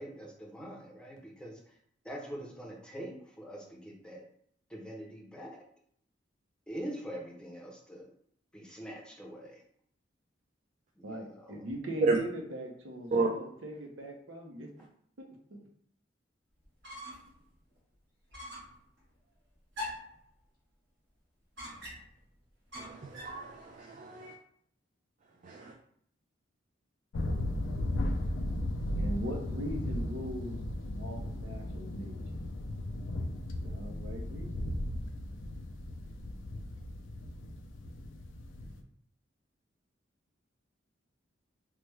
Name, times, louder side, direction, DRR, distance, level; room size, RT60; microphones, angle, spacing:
voice 1, 0.0-1.6 2.0-4.2 4.7-5.6 6.7-8.1 8.5-9.6 11.0-11.6, equal, 5° left, -2 dB, 0.6 m, -44 dB
voice 2, 11.0-14.7 15.2-15.3 15.5-15.6 29.0-30.6 31.0-32.2 33.6-34.7, right 1 dB, 85° right, 2 dB, 0.6 m, -40 dB
sound 1, 16.6-17.4 17.7-17.8 18.3-18.8 19.7-20.2 21.6-22.2 22.7-23.4, left 1 dB, 65° right, 1.4 m, -43 dB
voice 3, 22.8-24.3 25.4-25.7, right 3 dB, 40° right, 1 dB, 0.3 m, -31 dB
sound 2, 27.1-38.8, left 1 dB, 85° left, 0.4 m, -36 dB
3.2 x 2.1 x 3.2 m, 0.65 s
head